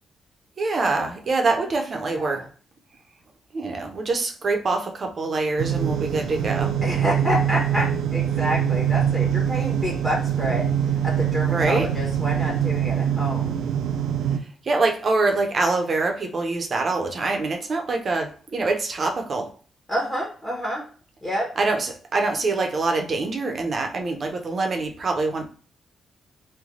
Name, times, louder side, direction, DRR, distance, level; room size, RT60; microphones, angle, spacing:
voice 1, 0.6-2.4 3.5-6.8 11.5-11.9 14.6-19.5 21.6-25.4, right 3 dB, 45° right, 4 dB, 0.7 m, -25 dB
voice 2, 1.9-2.4 6.8-13.6 19.9-20.8 21.2-21.5, equal, 10° left, -3 dB, 1.0 m, -28 dB
sound 1, 5.6-14.4, right 9 dB, 90° right, 0.3 m, -24 dB
3.2 x 2.2 x 3.7 m, 0.40 s
cardioid pair, 105°, 0 cm